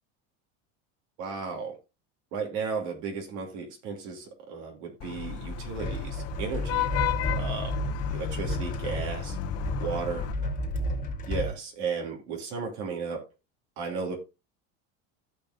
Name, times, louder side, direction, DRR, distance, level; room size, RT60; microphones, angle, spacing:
voice 1, 1.2-1.8 2.3-6.9 7.4-7.7 8.1-9.4 9.8-10.2 11.3-13.2 13.8-14.1, right 5 dB, 75° right, 3.1 m, -34 dB
Vehicle horn car horn honking / Traffic noise roadway noise, 5.0-10.3, left 9 dB, 45° left, 0.9 m, -33 dB
sound 1, 5.7-11.6, left 1 dB, 25° left, 1.8 m, -32 dB
14.5 x 5.3 x 2.7 m
supercardioid pair, 125°, 34 cm